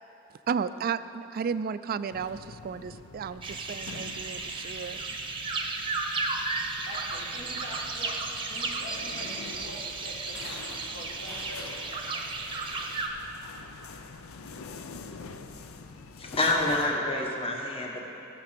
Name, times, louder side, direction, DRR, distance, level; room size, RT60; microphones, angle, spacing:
voice 1, 0.5-5.1, right 6 dB, 45° right, 0.3 m, -33 dB
sound 1, 2.1-17.0, left 4 dB, 85° left, 0.6 m, -46 dB
sound 2, 3.4-13.1, right 3 dB, 25° right, 0.8 m, -34 dB
voice 2, 6.9-12.0, equal, 60° left, 1.7 m, -45 dB
voice 3, 16.2-18.0, left 2 dB, 30° left, 1.2 m, -27 dB
15.0 x 6.6 x 5.9 m
head